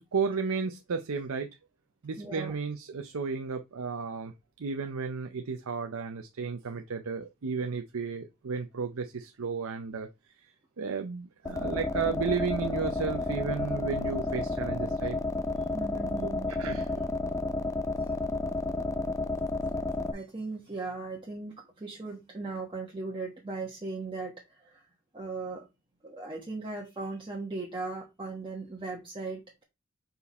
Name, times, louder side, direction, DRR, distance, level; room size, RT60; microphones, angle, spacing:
voice 1, 0.1-1.5 2.0-4.3 4.6-10.1 10.8-15.2 16.2-16.3 16.6-17.0, right 5 dB, 65° right, 0.6 m, -33 dB
voice 2, 2.2-2.5 15.7-16.5 20.1-24.9 25.1-25.6 26.0-29.6, right 3 dB, 20° right, 1.1 m, -38 dB
sound 1, 11.5-20.1, left 2 dB, 15° left, 0.4 m, -31 dB
5.2 x 4.7 x 4.1 m
head